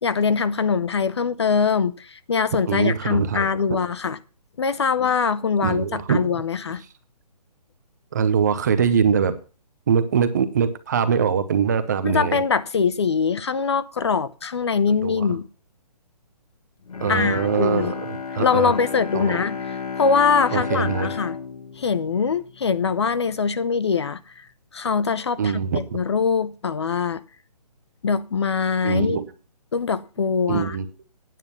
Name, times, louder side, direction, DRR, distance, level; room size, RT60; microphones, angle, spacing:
voice 1, 0.0-4.2 4.6-6.8 12.0-15.5 17.1-17.9 18.4-19.6 20.0-21.4 21.8-24.4 24.7-25.5 25.9-27.2 28.0-29.2 29.7-30.8, left 5 dB, 40° left, 0.5 m, -22 dB
voice 2, 2.5-3.8 5.6-6.3 8.1-9.4 9.9-12.4 14.9-15.4 17.0-18.7 19.1-19.4 20.5-21.1 25.4-26.0 28.8-29.2 30.5-30.9, right 6 dB, 25° right, 0.8 m, -23 dB
Bowed string instrument, 16.8-23.1 23.5-23.6, left 5 dB, 60° left, 1.4 m, -32 dB
9.2 x 7.9 x 7.0 m
hypercardioid pair, 170°, 21 cm